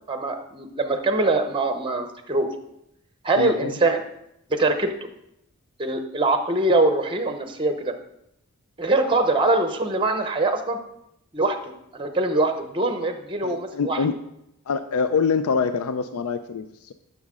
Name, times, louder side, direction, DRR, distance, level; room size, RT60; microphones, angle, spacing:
voice 1, 0.1-2.5 3.2-4.0 4.5-5.1 5.8-7.9 8.8-10.8 11.3-14.0, right 2 dB, 20° right, 7 dB, 0.7 m, -23 dB
voice 2, 3.4-3.7 13.4-14.2 14.7-16.9, left 5 dB, 70° left, 10 dB, 0.4 m, -25 dB
11.5 x 6.2 x 3.6 m, 0.81 s
head